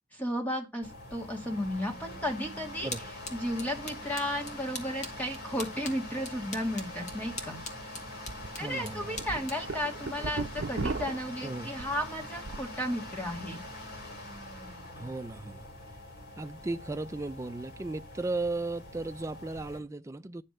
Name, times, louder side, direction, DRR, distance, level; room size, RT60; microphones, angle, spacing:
voice 1, 0.1-2.9 3.3-7.6 8.6-13.6, equal, 10° left, 1.8 m, -34 dB
sound 1, 0.8-19.8, left 1 dB, 55° left, 2.4 m, -44 dB
sound 2, 2.9-10.9, left 2 dB, 40° left, 1.7 m, -45 dB
sound 3, 7.1-7.2 7.6-7.7 8.3-8.5 8.9-12.7 13.1-13.5, right 3 dB, 65° right, 0.6 m, -37 dB
voice 2, 8.6-9.5 11.4-11.7 15.0-15.7 16.4-20.4, right 2 dB, 15° right, 0.4 m, -36 dB
10.0 x 3.3 x 6.5 m
head